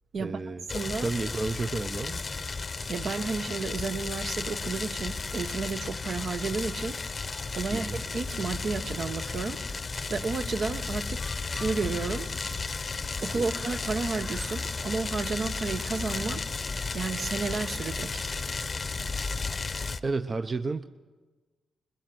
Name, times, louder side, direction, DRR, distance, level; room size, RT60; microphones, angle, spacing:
voice 1, 0.2-0.6 1.0-2.2 7.7-8.0 13.3-13.5 20.0-20.8, right 3 dB, 35° right, 0.7 m, -31 dB
sound 1, 0.7-20.0, left 4 dB, 35° left, 0.8 m, -34 dB
voice 2, 0.7-1.1 2.9-7.0 7.5-9.6 10.1-11.2 11.5-12.3 13.2-16.5 16.9-18.2, right 4 dB, 55° right, 1.0 m, -32 dB
21.5 x 21.0 x 7.8 m
cardioid pair, 95°, 0 cm